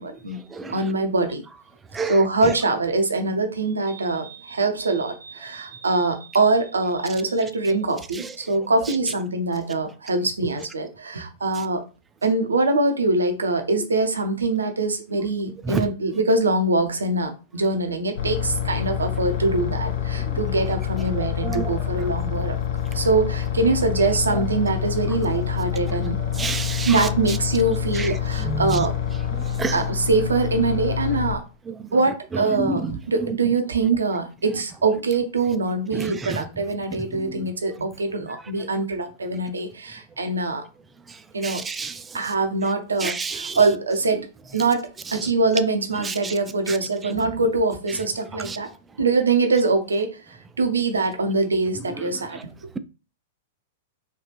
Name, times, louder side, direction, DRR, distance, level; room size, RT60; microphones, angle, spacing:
voice 1, 0.0-0.4 0.7-1.4 2.1-11.8 12.2-22.5 22.9-26.2 26.9-28.9 29.7-31.4 31.9-40.6 41.3-41.6 42.1-44.3 44.5-48.7 49.0-52.4, right 3 dB, 75° right, 0.6 m, -23 dB
sound 1, 18.2-31.3, left 9 dB, 50° left, 0.7 m, -27 dB
voice 2, 26.4-27.0 28.4-28.8 29.6-29.7 32.6-32.8 41.4-41.9 43.0-43.6 48.5-48.6, right 4 dB, 15° right, 0.3 m, -27 dB
3.3 x 2.4 x 2.9 m
figure-of-eight pair, 100°, 0 cm